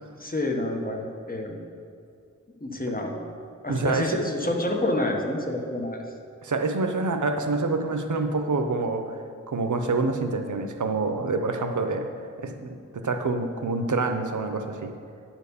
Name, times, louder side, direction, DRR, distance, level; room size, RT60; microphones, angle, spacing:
voice 1, 0.1-1.6 2.6-3.3 3.6-6.0, left 1 dB, 30° left, 1 dB, 1.1 m, -28 dB
voice 2, 3.7-4.1 6.4-9.2 9.5-12.1 12.4-14.9, right 3 dB, 80° right, 6 dB, 0.7 m, -27 dB
9.6 x 4.5 x 6.9 m, 2.5 s
wide cardioid pair, 60°, 29 cm